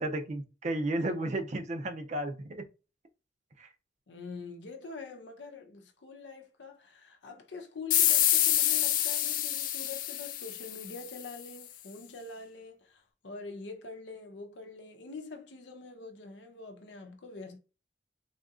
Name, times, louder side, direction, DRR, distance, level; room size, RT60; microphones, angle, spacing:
voice 1, 0.0-2.6 3.6-3.7, right 1 dB, 40° right, 0.5 m, -33 dB
voice 2, 4.1-17.6, left 4 dB, 85° left, 0.7 m, -45 dB
sound 1, 7.9-11.2, left 12 dB, 50° left, 0.3 m, -27 dB
3.6 x 2.8 x 2.4 m
head